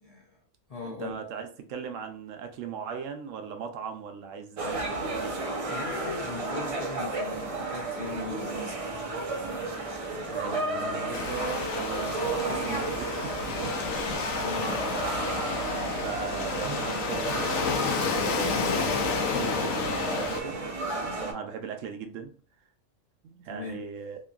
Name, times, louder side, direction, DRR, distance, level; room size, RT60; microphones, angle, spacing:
voice 1, 0.0-0.4 0.7-1.2 4.9-5.0 5.7-8.8 14.3-14.9 23.5-23.8, left 3 dB, 45° left, -3 dB, 0.5 m, -39 dB
voice 2, 0.8-5.4 10.0-13.7 14.4-14.6 14.9-15.7 16.0-17.5 18.1-18.9 19.2-20.6 21.0-22.3 23.2-24.2, right 6 dB, 80° right, 5 dB, 0.9 m, -38 dB
sound 1, 4.6-21.3, right 2 dB, 60° right, 0.3 m, -33 dB
Waves surf, 11.1-20.4, left 4 dB, 85° left, 1.0 m, -30 dB
2.9 x 2.5 x 2.3 m, 0.40 s
omnidirectional pair, 1.3 m